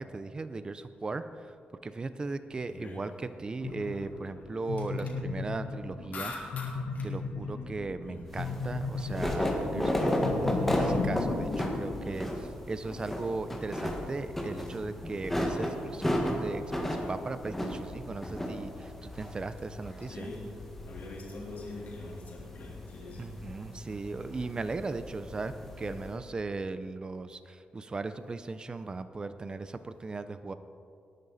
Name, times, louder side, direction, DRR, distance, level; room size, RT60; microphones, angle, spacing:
voice 1, 0.0-1.5 1.8-6.3 7.0-20.3 23.2-30.5, right 3 dB, 25° right, 11 dB, 0.6 m, -37 dB
voice 2, 2.7-3.0 3.9-4.0 6.1-6.7 6.9-7.0 8.0-8.3 20.0-20.5 20.9-23.3 25.8-25.9, left 3 dB, 60° left, -4 dB, 3.4 m, -42 dB
sound 1, 3.6-12.1, left 4 dB, 80° left, 1.2 m, -36 dB
sound 2, 8.3-26.1, left 1 dB, 5° left, 1.7 m, -34 dB
19.0 x 10.5 x 4.1 m, 2.3 s
wide cardioid pair, 130°, 3 cm